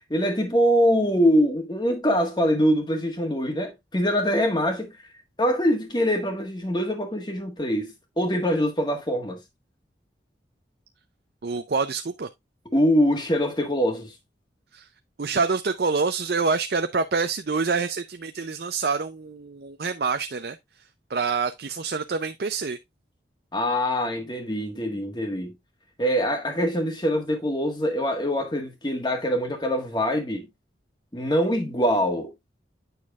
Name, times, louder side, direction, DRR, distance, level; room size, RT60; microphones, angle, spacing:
voice 1, 0.1-5.0 5.4-9.4 12.7-14.1 23.5-25.5 26.0-30.5 31.1-32.3, equal, 25° left, 1.5 m, -24 dB
voice 2, 11.4-12.3 14.7-14.9 15.2-20.6 21.1-22.8, right 4 dB, 60° right, 0.5 m, -26 dB
9.2 x 6.3 x 2.4 m
head